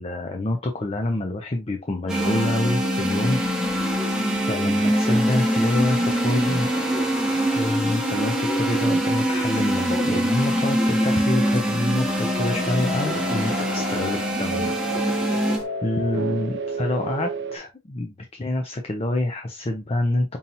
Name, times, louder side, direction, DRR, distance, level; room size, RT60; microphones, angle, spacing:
voice 1, 0.0-4.1 4.4-6.7 7.3-14.7 15.8-20.4, left 1 dB, 30° left, 4 dB, 0.5 m, -27 dB
sound 1, 2.1-15.6, right 1 dB, 5° right, 0.9 m, -23 dB
sound 2, 4.7-15.6, left 1 dB, 75° left, 2.1 m, -38 dB
sound 3, 12.4-17.6, right 2 dB, 60° right, 0.6 m, -31 dB
5.4 x 2.8 x 2.5 m, 0.25 s
head